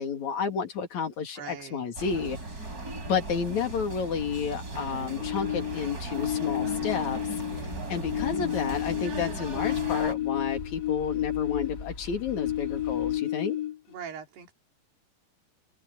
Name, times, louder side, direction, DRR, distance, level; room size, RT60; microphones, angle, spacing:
voice 1, 0.0-2.4 3.1-7.4 7.9-13.6, left 6 dB, 45° left, 3.4 m, -31 dB
voice 2, 1.4-1.9 13.9-14.5, right 7 dB, 65° right, 5.3 m, -41 dB
sound 1, 2.0-10.1, right 2 dB, 20° right, 5.3 m, -37 dB
sound 2, 5.2-7.7 8.0-11.9 12.3-13.9, left 13 dB, 75° left, 4.1 m, -31 dB
sound 3, 7.5-13.2, left 2 dB, 25° left, 2.0 m, -43 dB
omnidirectional pair, 5.1 m